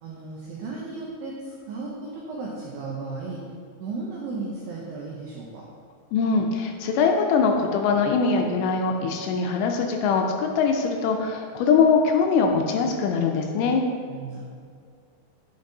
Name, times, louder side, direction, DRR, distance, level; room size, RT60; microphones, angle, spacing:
voice 1, 0.0-3.4 3.8-5.7 14.1-14.5, right 3 dB, 90° right, -4 dB, 2.0 m, -35 dB
voice 2, 6.1-13.8, left 5 dB, 80° left, 3 dB, 2.6 m, -22 dB
9.2 x 5.2 x 2.7 m, 2.2 s
omnidirectional pair, 5.2 m